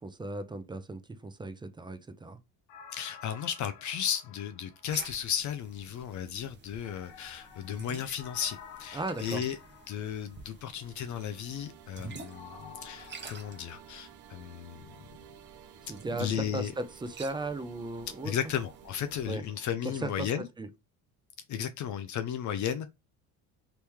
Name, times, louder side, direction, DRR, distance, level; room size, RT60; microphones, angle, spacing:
voice 1, 0.0-2.4 8.9-9.4 15.8-18.3 19.3-19.4 20.0-20.3 20.6-20.7, right 2 dB, 10° right, 0.4 m, -36 dB
sound 1, 2.7-5.5 6.8-10.6 12.3-13.6, left 7 dB, 80° left, 0.8 m, -51 dB
voice 2, 2.9-9.6 9.9-14.8 16.2-16.7 18.1-20.5 21.5-22.9, left 9 dB, 45° left, 0.5 m, -34 dB
sound 2, 4.9-19.4, right 4 dB, 25° right, 0.8 m, -50 dB
sound 3, 10.3-20.5, right 11 dB, 70° right, 0.6 m, -54 dB
3.0 x 2.9 x 3.4 m
supercardioid pair, 90°, 40 cm